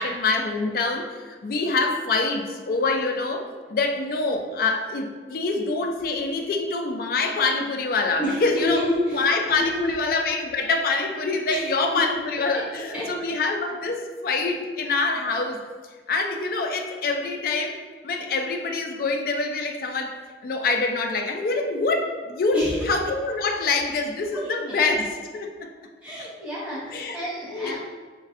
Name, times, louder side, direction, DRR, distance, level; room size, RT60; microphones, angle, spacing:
voice 1, 0.0-8.8 9.1-15.6 16.1-17.8 18.0-20.2 20.4-25.7 26.9-27.2 27.5-27.8, left 3 dB, 55° left, 4 dB, 0.3 m, -25 dB
voice 2, 8.2-9.3 9.6-9.9 11.5-12.2 12.7-13.1 22.5-22.9 24.3-24.5 26.0-27.8, left 1 dB, 10° right, -9 dB, 0.9 m, -29 dB
3.1 x 2.5 x 2.4 m, 1.5 s
head